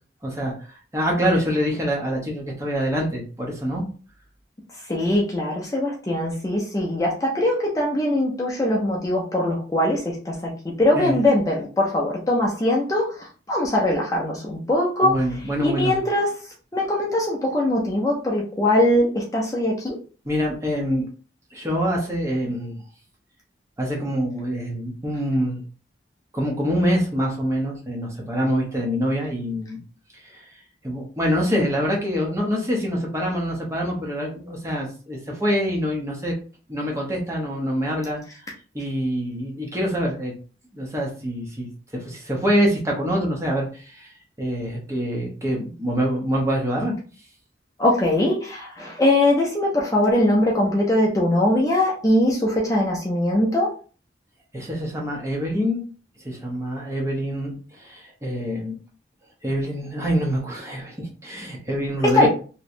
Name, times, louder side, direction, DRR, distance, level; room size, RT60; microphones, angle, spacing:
voice 1, 0.2-0.5 0.9-3.8 10.9-11.2 15.0-16.0 20.2-21.1 21.5-22.8 23.8-25.6 26.3-29.8 30.3-30.5 30.8-36.4 36.7-38.2 38.7-40.3 40.7-44.1 44.4-46.9 54.5-55.8 56.2-58.8 59.4-62.3, equal, 15° right, -1 dB, 1.0 m, -25 dB
voice 2, 4.9-15.2 15.6-16.3 16.7-20.0 47.8-53.7 62.1-62.3, left 1 dB, 20° left, -3 dB, 0.6 m, -21 dB
3.1 x 3.0 x 2.7 m, 0.38 s
head